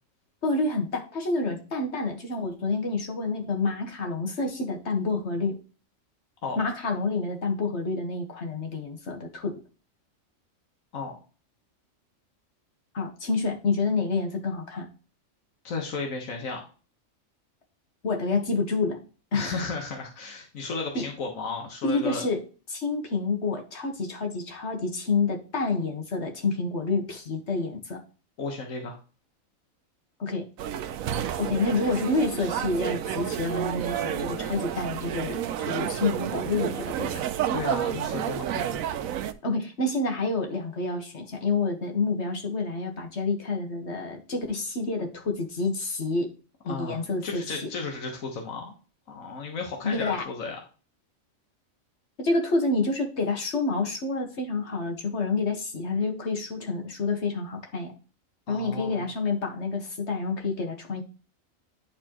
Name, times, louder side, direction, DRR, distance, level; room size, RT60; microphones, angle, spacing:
voice 1, 0.4-5.6 6.6-9.6 12.9-14.9 18.0-19.0 19.3-19.7 21.0-21.1 21.8-22.4 22.7-28.0 30.2-30.5 31.4-37.3 39.4-46.3 46.6-47.4 49.8-50.3 52.2-57.9 58.5-61.0, left 3 dB, 55° left, 3 dB, 1.7 m, -28 dB
voice 2, 15.6-16.7 19.3-22.2 28.4-29.0 37.5-38.8 46.7-47.0 47.2-48.7 49.1-50.6 58.5-59.1, left 4 dB, 85° left, 1 dB, 1.7 m, -34 dB
sound 1, 30.6-39.3, right 10 dB, 90° right, 1.0 m, -30 dB
10.5 x 4.3 x 3.0 m, 0.36 s
omnidirectional pair, 1.4 m